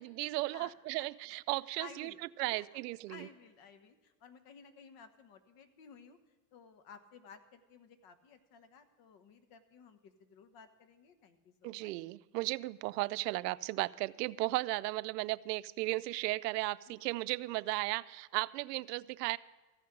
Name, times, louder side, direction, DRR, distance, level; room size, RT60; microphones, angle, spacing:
voice 1, 0.0-3.3 11.6-19.4, right 20 dB, 85° right, 16 dB, 0.6 m, -35 dB
voice 2, 1.8-2.6 3.1-6.2 6.5-11.9 16.9-17.1, left 6 dB, 45° left, 9 dB, 1.3 m, -56 dB
14.5 x 5.8 x 9.9 m, 1.2 s
supercardioid pair, 130°, 47 cm